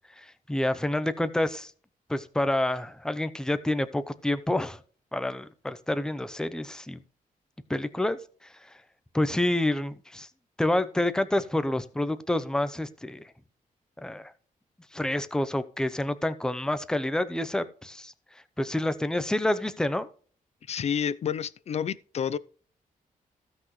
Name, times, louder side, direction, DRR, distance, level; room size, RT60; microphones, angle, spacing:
voice 1, 0.2-1.7 2.1-4.8 5.1-7.0 7.7-8.2 9.1-10.3 10.6-13.2 14.0-14.3 14.9-18.1 18.6-20.1, left 1 dB, 5° left, 0.7 m, -28 dB
voice 2, 20.7-22.4, left 8 dB, 50° left, 0.5 m, -29 dB
15.5 x 6.0 x 3.2 m
wide cardioid pair, 165°, 15 cm